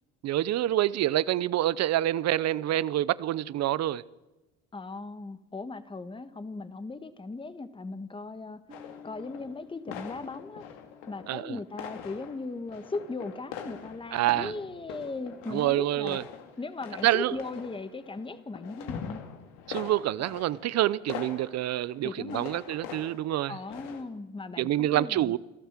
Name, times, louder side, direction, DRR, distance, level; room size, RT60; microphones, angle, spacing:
voice 1, 0.2-4.0 11.3-11.6 14.1-14.5 15.5-16.2 17.0-17.3 19.7-23.6 24.6-25.4, right 14 dB, 55° right, 0.8 m, -27 dB
voice 2, 4.7-8.6 9.0-10.6 11.1-16.2 16.6-19.2 22.0-22.5 23.5-25.4, left 3 dB, 15° left, 1.5 m, -38 dB
sound 1, 8.7-9.6 9.9-11.4 11.7-24.0, left 8 dB, 75° left, 2.7 m, -43 dB
Piano, 8.7-14.1, left 6 dB, 25° right, 3.1 m, -56 dB
28.0 x 12.5 x 7.5 m
supercardioid pair, 80°, 32 cm